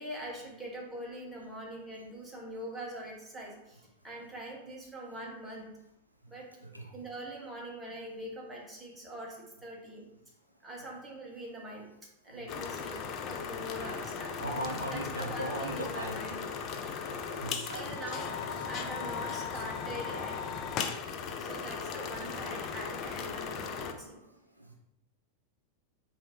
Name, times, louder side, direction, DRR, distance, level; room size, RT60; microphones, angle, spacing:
voice 1, 0.0-5.7 6.3-6.5 6.9-10.1 10.6-11.9 12.2-14.3 14.9-16.4 17.6-20.4 21.4-24.2, right 1 dB, 10° right, -3 dB, 1.1 m, -43 dB
sound 1, 12.5-23.9, left 6 dB, 35° left, 0.4 m, -37 dB
voice 2, 14.4-16.5 17.0-18.5 22.0-22.1 22.4-22.6, right 1 dB, 85° right, 1 dB, 0.4 m, -39 dB
4.2 x 2.6 x 3.0 m, 0.84 s
figure-of-eight pair, 90°, 0 cm